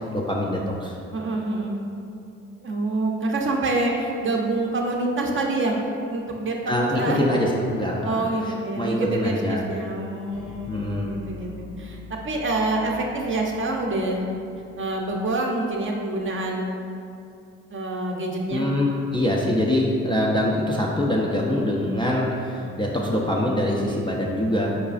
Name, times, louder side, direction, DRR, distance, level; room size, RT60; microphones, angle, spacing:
voice 1, 0.1-1.0 6.7-8.1 8.4-9.7 10.7-11.1 18.5-24.8, left 1 dB, 15° left, -4 dB, 0.4 m, -24 dB
voice 2, 1.1-1.8 2.6-5.8 6.1-7.2 8.0-14.2 14.8-16.8 17.7-18.7, right 2 dB, 35° right, 0 dB, 0.6 m, -26 dB
sound 1, 10.3-16.4, left 4 dB, 60° left, 0.8 m, -44 dB
4.8 x 2.3 x 2.4 m, 2.6 s
hypercardioid pair, 50°, 36 cm